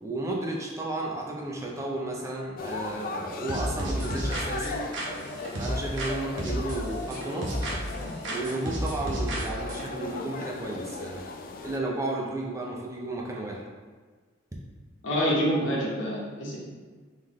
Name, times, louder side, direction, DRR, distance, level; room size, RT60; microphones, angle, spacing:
voice 1, 0.0-4.8 5.5-7.6 8.3-11.2 11.6-13.6, right 2 dB, 15° right, -2 dB, 0.5 m, -33 dB
sound 1, 2.6-11.8, left 3 dB, 45° left, 0.3 m, -38 dB
sound 2, 3.5-6.1 6.4-8.0 8.2-9.9, equal, 65° right, 0.8 m, -31 dB
voice 2, 15.0-16.6, equal, 70° left, -6 dB, 1.1 m, -26 dB
3.8 x 3.5 x 3.1 m, 1.4 s
head